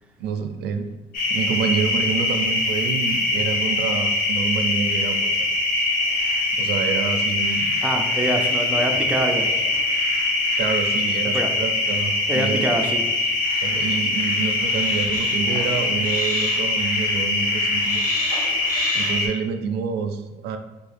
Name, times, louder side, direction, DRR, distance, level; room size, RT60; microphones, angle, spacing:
voice 1, 0.2-0.9 1.3-5.5 6.5-7.8 10.6-12.7 13.6-18.0 18.9-20.6, right 6 dB, 75° right, 7 dB, 0.4 m, -27 dB
sound 1, 1.1-19.3, left 2 dB, 55° left, 1.0 m, -23 dB
voice 2, 7.8-9.5 11.3-11.5 12.3-13.0, right 1 dB, 5° right, 2 dB, 0.4 m, -24 dB
3.7 x 2.3 x 3.2 m, 1.1 s
cardioid pair, 110°, 17 cm